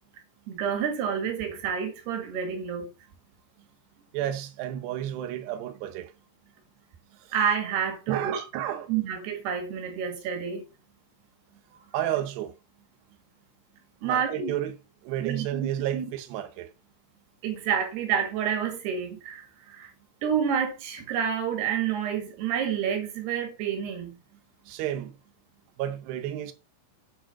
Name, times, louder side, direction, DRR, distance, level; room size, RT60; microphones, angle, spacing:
voice 1, 0.5-2.9 7.3-8.4 8.9-10.6 14.0-14.5 15.2-16.1 17.4-19.9 20.2-24.2, right 8 dB, 60° right, 3.6 m, -29 dB
voice 2, 4.1-6.1 7.1-7.3 8.1-8.9 11.9-12.5 14.0-14.7 15.0-16.7 24.7-25.2 25.8-26.5, right 11 dB, 80° right, 2.4 m, -31 dB
8.7 x 4.6 x 5.8 m
omnidirectional pair, 5.9 m